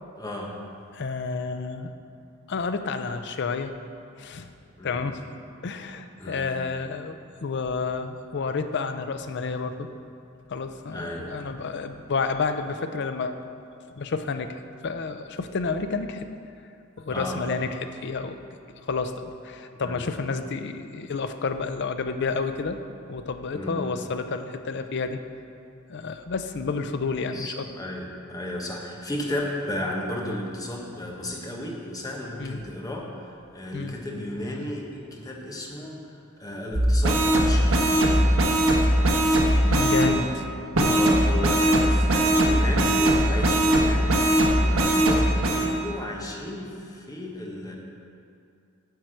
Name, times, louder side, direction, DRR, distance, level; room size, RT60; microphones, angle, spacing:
voice 1, 0.2-0.6 4.8-5.0 6.2-6.5 10.9-11.6 17.1-17.5 19.8-20.0 23.5-23.8 27.3-38.3 40.0-40.4 40.9-44.3 44.6-47.8, left 1 dB, 15° left, -1 dB, 1.1 m, -34 dB
voice 2, 0.9-1.9 2.5-3.7 4.2-4.5 4.8-5.2 5.6-9.9 10.5-13.3 14.0-16.3 17.0-18.4 18.8-22.8 23.1-25.2 25.9-27.7 32.4-32.6 33.7-33.9 39.6-40.3, left 4 dB, 55° left, 8 dB, 0.5 m, -30 dB
sound 1, 36.7-40.1 40.7-45.6, right 1 dB, 75° right, 1.3 m, -20 dB
9.5 x 4.6 x 7.6 m, 2.5 s
head